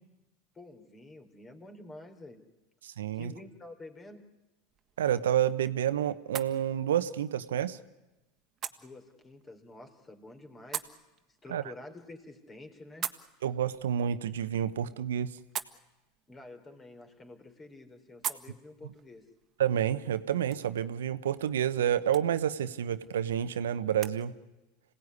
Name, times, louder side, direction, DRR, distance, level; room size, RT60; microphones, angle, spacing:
voice 1, 0.5-2.5 3.1-4.2 8.8-10.9 11.4-13.1 16.3-19.3, left 2 dB, 25° left, 6 dB, 4.0 m, -49 dB
voice 2, 2.8-3.3 5.0-7.8 11.5-11.6 13.4-15.4 19.6-24.3, right 10 dB, 80° right, 12 dB, 1.0 m, -29 dB
sound 1, 4.7-24.2, right 9 dB, 35° right, 1.6 m, -46 dB
26.5 x 17.5 x 9.7 m, 1.0 s
hypercardioid pair, 85°, 0 cm